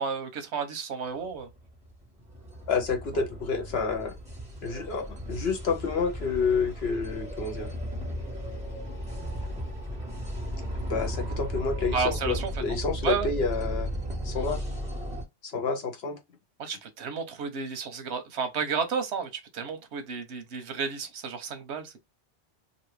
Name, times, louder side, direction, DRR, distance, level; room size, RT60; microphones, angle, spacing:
voice 1, 0.0-1.5 11.9-12.6 13.0-13.3 16.6-22.0, right 5 dB, 85° right, 1.1 m, -32 dB
sound 1, 1.3-15.2, equal, 5° right, 1.4 m, -35 dB
voice 2, 2.7-4.1 4.6-7.7 10.9-13.9 14.2-14.6 15.4-16.2, left 4 dB, 70° left, 1.1 m, -29 dB
2.9 x 2.6 x 3.1 m
omnidirectional pair, 1.1 m